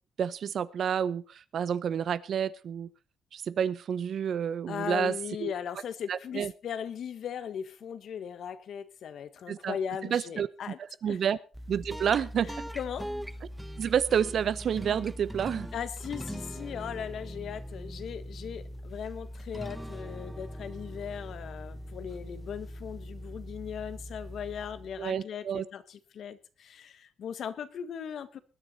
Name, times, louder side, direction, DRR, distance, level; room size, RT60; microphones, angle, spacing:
voice 1, 0.2-2.9 3.3-5.1 5.4-5.5 6.1-6.5 9.5-9.8 10.1-10.5 11.0-11.4 11.7-12.5 13.8-15.7 25.0-25.6, right 8 dB, 60° right, 17 dB, 0.9 m, -29 dB
voice 2, 4.7-10.8 11.1-11.2 12.4-13.1 15.7-28.4, left 8 dB, 65° left, 13 dB, 1.5 m, -38 dB
sound 1, 11.5-25.1, equal, 5° right, 1.0 m, -41 dB
20.5 x 10.0 x 4.2 m, 0.34 s
cardioid pair, 90°, 0 cm